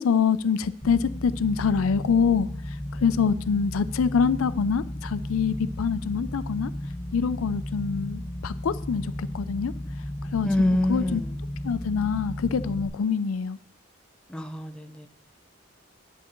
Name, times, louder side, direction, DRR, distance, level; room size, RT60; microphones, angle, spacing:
voice 1, 0.0-2.5 3.0-6.7 7.1-9.7 10.3-10.5 10.9-11.2 11.6-13.6, left 6 dB, 85° left, 14 dB, 0.4 m, -25 dB
sound 1, 0.8-12.9, left 1 dB, 20° left, 1.0 m, -34 dB
voice 2, 10.4-11.3 14.3-15.1, left 1 dB, 5° left, 5 dB, 0.4 m, -26 dB
11.0 x 7.9 x 3.0 m, 0.64 s
head